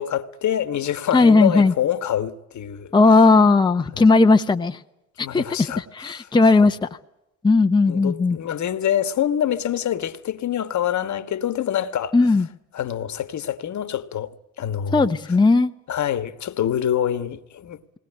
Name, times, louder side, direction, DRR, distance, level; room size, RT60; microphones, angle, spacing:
voice 1, 0.0-2.9 5.2-6.3 6.6-6.7 7.9-12.1 12.7-15.1 15.9-17.8, left 10 dB, 45° left, 1.4 m, -26 dB
voice 2, 1.1-1.7 2.9-4.8 5.2-5.4 5.8-6.8 7.4-8.4 12.1-12.5 14.9-15.7, left 3 dB, 10° left, 0.8 m, -16 dB
20.5 x 18.5 x 9.8 m
hypercardioid pair, 55°, 39 cm